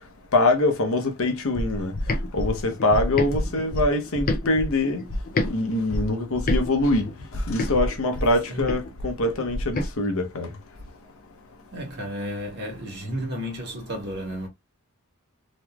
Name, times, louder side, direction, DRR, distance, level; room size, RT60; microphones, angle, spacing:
voice 1, 0.3-1.9 2.3-5.0 5.4-7.1 7.5-10.5, left 2 dB, 65° left, 0.8 m, -24 dB
sound 1, 1.6-5.5 5.9-9.9, left 1 dB, 40° left, 0.5 m, -28 dB
voice 2, 11.7-14.5, equal, 50° right, 1.5 m, -32 dB
3.1 x 3.0 x 2.2 m
head